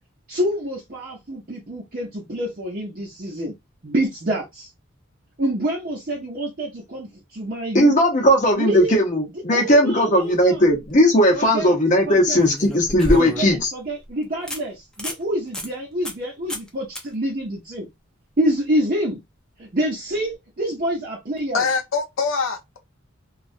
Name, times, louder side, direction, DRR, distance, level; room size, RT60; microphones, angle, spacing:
voice 1, 0.3-3.5 3.8-4.7 5.4-7.9 8.5-10.7 11.3-11.8 12.1-12.5 13.1-17.9 18.4-19.2 19.6-21.7, right 1 dB, 45° right, 0.7 m, -27 dB
voice 2, 7.7-13.7, equal, 35° left, 0.8 m, -17 dB
sound 1, 10.6-10.9 12.3-13.6 14.0-14.1 14.5-14.6 14.9-15.2 15.5-15.7 16.0-16.2 16.5-16.7 17.0-17.1 20.1-20.2, equal, 5° left, 0.5 m, -29 dB
voice 3, 21.5-22.8, left 5 dB, 75° left, 0.7 m, -23 dB
3.0 x 2.3 x 2.6 m
head